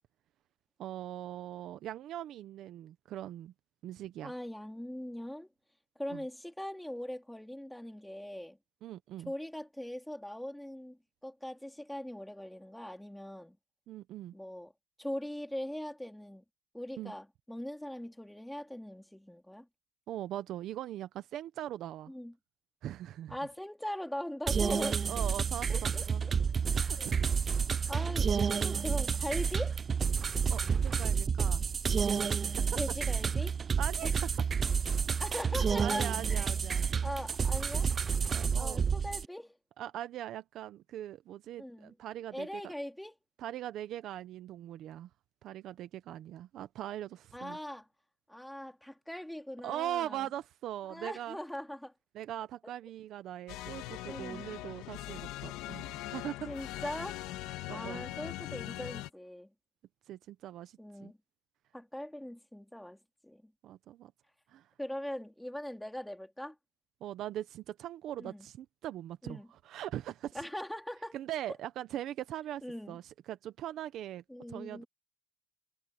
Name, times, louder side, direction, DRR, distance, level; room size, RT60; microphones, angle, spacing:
voice 1, 0.8-3.5 3.8-4.3 6.1-6.2 8.8-9.3 13.9-14.3 17.0-17.1 20.1-22.1 22.8-23.4 25.1-26.2 26.7-27.4 30.5-31.7 32.4-32.7 33.8-34.3 35.1-35.2 35.8-36.9 38.3-38.8 39.8-42.7 43.4-45.1 45.4-47.6 49.6-51.4 52.1-56.7 57.7-58.1 60.1-61.1 63.6-64.1 64.5-64.7 67.0-70.4 71.1-74.2 74.5-74.8, right 12 dB, 50° right, 0.9 m, -41 dB
voice 2, 4.2-5.5 6.0-8.6 9.3-13.6 14.3-14.7 15.0-16.4 16.7-19.7 22.1-22.3 23.3-25.0 25.7-26.3 27.0-27.2 27.9-29.8 32.8-33.6 34.0-34.1 35.2-36.5 37.0-37.9 38.6-39.6 41.6-41.9 42.3-43.2 47.3-47.9 48.3-50.3 50.9-51.9 54.1-54.5 56.5-57.2 57.7-59.5 60.8-61.2 61.7-63.5 64.8-66.6 68.2-68.5 69.2-69.5 70.3-71.2 72.6-73.0 74.3-74.9, left 1 dB, 5° left, 3.3 m, -41 dB
sound 1, 24.5-39.3, right 6 dB, 25° right, 0.3 m, -30 dB
sound 2, 53.5-59.1, left 16 dB, 70° left, 1.7 m, -41 dB
cardioid pair, 150°, 0 cm